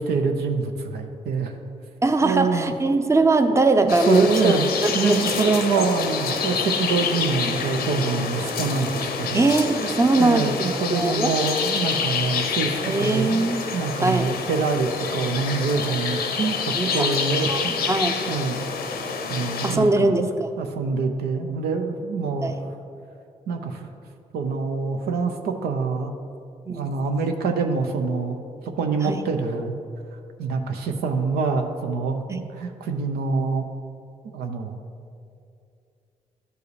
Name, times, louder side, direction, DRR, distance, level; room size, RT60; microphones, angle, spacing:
voice 1, 0.0-1.5 2.2-2.7 3.8-9.4 10.2-17.9 18.3-18.7 19.3-20.2 20.6-22.5 23.5-23.9 24.3-26.1 26.7-28.4 28.7-29.8 30.4-32.2 32.6-33.7 34.3-34.8, right 4 dB, 80° right, 5 dB, 0.6 m, -25 dB
voice 2, 2.0-5.2 5.8-5.9 9.3-10.6 10.9-11.3 12.8-13.6 14.0-14.3 16.8-17.1 17.5-18.2 19.6-20.5 22.4-22.5 26.7-26.8 29.0-29.2 32.3-32.4, right 2 dB, 20° right, 7 dB, 0.7 m, -21 dB
sound 1, 3.9-19.8, left 5 dB, 75° left, 0.7 m, -27 dB
12.0 x 4.6 x 3.2 m, 2.4 s
hypercardioid pair, 45°, 16 cm